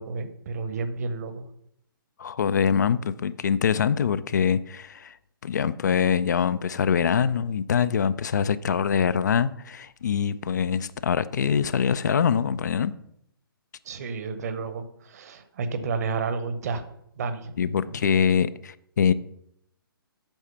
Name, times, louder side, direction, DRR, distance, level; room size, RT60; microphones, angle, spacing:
voice 1, 0.0-1.5 13.8-16.8 17.2-18.0, right 4 dB, 40° right, 1.0 m, -31 dB
voice 2, 2.2-5.2 5.4-12.9 17.6-19.1, left 7 dB, 50° left, 0.4 m, -24 dB
8.9 x 6.3 x 5.7 m
figure-of-eight pair, 130°, 12 cm